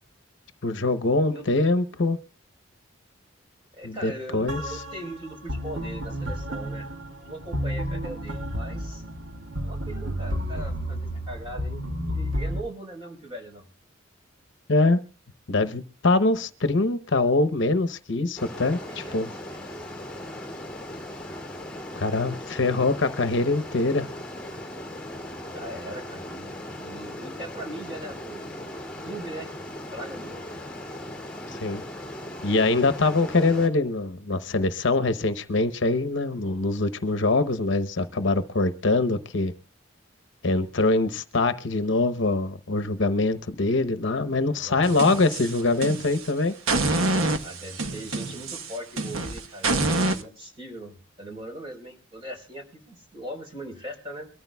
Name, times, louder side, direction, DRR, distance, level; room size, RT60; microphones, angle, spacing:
voice 1, 0.6-2.2 3.8-4.6 14.7-15.0 15.5-19.3 22.0-24.1 31.5-31.8 32.4-39.5 40.4-46.5, left 2 dB, 65° left, 0.9 m, -23 dB
voice 2, 3.8-9.0 9.6-13.7 18.8-19.6 25.4-26.5 26.7-28.4 29.0-29.5 29.9-30.3 44.5-45.2 47.3-49.7 50.0-54.3, right 1 dB, 25° right, 4.3 m, -40 dB
sound 1, 4.5-12.6, equal, 70° right, 2.2 m, -31 dB
sound 2, 18.4-33.7, left 1 dB, 5° left, 2.5 m, -38 dB
sound 3, 44.8-46.3 46.7-50.2, right 2 dB, 85° right, 1.2 m, -27 dB
23.5 x 13.5 x 2.3 m
head